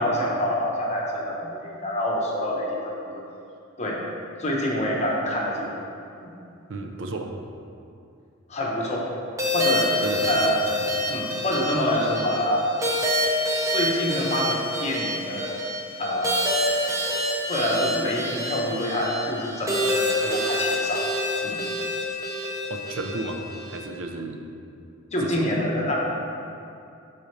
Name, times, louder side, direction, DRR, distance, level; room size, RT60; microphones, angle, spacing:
voice 1, 0.0-3.2 3.8-4.0 4.4-5.7 6.2-6.3 8.5-9.1 9.5-9.9 10.3-10.6 11.1-12.7 13.7-15.5 16.0-16.5 17.5-21.1 21.4-21.6 25.1-26.0, left 1 dB, 35° left, -3 dB, 1.1 m, -26 dB
voice 2, 6.7-7.3 10.0-10.6 22.7-23.4 23.7-24.4 25.2-25.6, right 2 dB, 65° right, 4 dB, 0.7 m, -33 dB
sound 1, 9.4-23.8, left 1 dB, 15° right, 0.9 m, -27 dB
11.5 x 4.3 x 3.3 m, 2.6 s
head